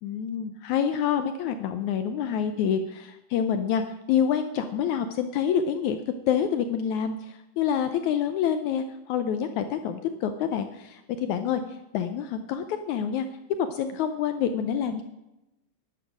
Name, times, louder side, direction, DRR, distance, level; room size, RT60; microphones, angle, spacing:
voice 1, 0.0-3.8 4.1-6.0 6.3-11.6 11.9-13.3 13.7-15.0, left 8 dB, 75° left, 9 dB, 1.8 m, -27 dB
11.5 x 11.5 x 6.2 m, 0.93 s
omnidirectional pair, 3.9 m